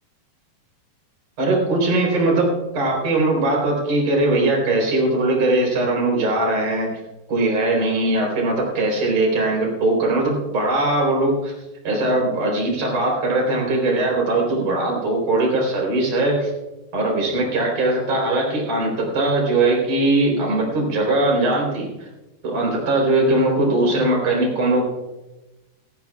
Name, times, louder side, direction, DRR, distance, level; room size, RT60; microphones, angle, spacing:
voice 1, 1.4-7.0 7.3-11.5 11.8-16.5 16.9-22.1 22.4-24.8, right 2 dB, 40° right, -1 dB, 4.7 m, -20 dB
27.5 x 9.4 x 2.4 m, 1.0 s
omnidirectional pair, 4.9 m